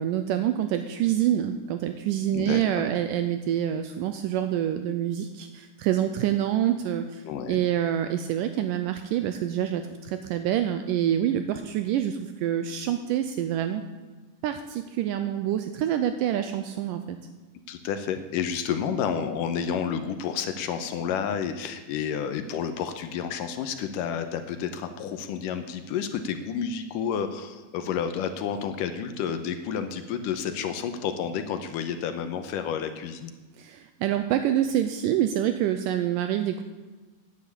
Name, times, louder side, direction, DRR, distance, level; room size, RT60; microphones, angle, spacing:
voice 1, 0.0-13.8 14.4-17.2 33.6-36.6, right 11 dB, 85° right, 8 dB, 2.0 m, -26 dB
voice 2, 7.2-7.6 17.7-33.3, left 7 dB, 75° left, 8 dB, 2.2 m, -30 dB
10.0 x 9.5 x 8.3 m, 1.3 s
omnidirectional pair, 4.3 m